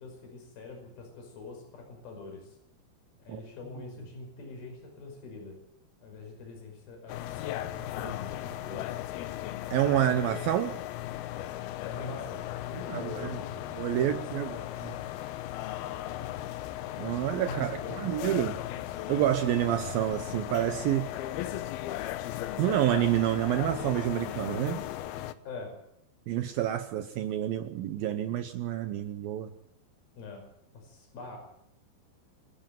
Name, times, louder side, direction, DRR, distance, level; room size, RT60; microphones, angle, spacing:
voice 1, 0.0-2.6 3.2-5.6 6.0-8.9 11.9-13.8 14.0-14.7 17.5-18.1 25.5-25.7 30.2-30.4 30.7-31.4, left 3 dB, 55° left, 2 dB, 7.4 m, -43 dB
sound 1, 7.1-25.3, left 13 dB, 75° left, 2.5 m, -37 dB
voice 2, 9.7-10.8 12.9-13.4 13.8-14.6 14.8-14.9 17.0-18.6 19.1-21.1 22.6-24.8 26.3-29.5, right 12 dB, 75° right, 9 dB, 2.3 m, -28 dB
27.5 x 11.0 x 9.1 m, 0.75 s
omnidirectional pair, 5.1 m